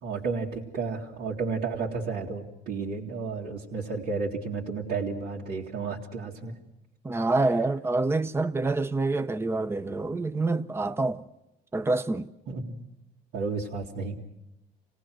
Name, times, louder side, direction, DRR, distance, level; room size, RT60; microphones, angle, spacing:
voice 1, 0.0-6.5 12.5-12.8 13.3-14.2, right 4 dB, 75° right, 2.6 m, -32 dB
voice 2, 7.0-11.2 11.7-12.3, right 3 dB, 15° right, 0.7 m, -27 dB
28.0 x 18.5 x 6.2 m
cardioid pair, 110°, 17 cm